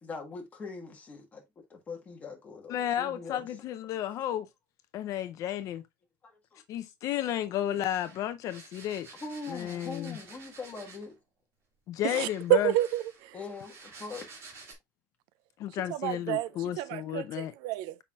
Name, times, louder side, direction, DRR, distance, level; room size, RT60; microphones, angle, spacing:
voice 1, 0.0-1.4 1.7-3.5 6.2-6.6 9.2-11.2 13.3-14.2 15.9-16.0, left 4 dB, 20° left, 1.5 m, -42 dB
voice 2, 2.7-4.5 4.9-5.8 6.7-9.1 9.5-10.2 11.9-12.7 15.6-17.5, left 11 dB, 45° left, 0.5 m, -32 dB
sound 1, 7.7-11.2 12.0-14.7, right 4 dB, 35° right, 2.3 m, -51 dB
voice 3, 12.0-13.4 15.9-18.0, right 15 dB, 70° right, 0.4 m, -29 dB
7.2 x 5.5 x 2.4 m
cardioid pair, 175°, 8 cm